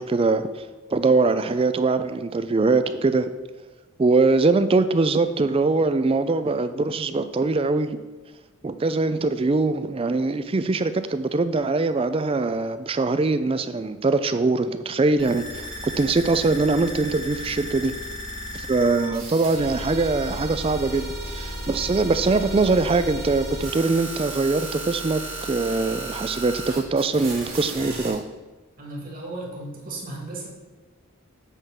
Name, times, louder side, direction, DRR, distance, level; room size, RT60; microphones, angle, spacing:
voice 1, 0.0-3.3 4.0-7.9 8.6-17.9 18.5-28.2, right 3 dB, 25° right, 11 dB, 0.3 m, -22 dB
sound 1, 15.2-28.1, right 1 dB, 60° right, 2.4 m, -34 dB
voice 2, 28.8-30.5, right 2 dB, 40° right, -3 dB, 2.1 m, -35 dB
8.2 x 3.6 x 5.9 m, 1.2 s
head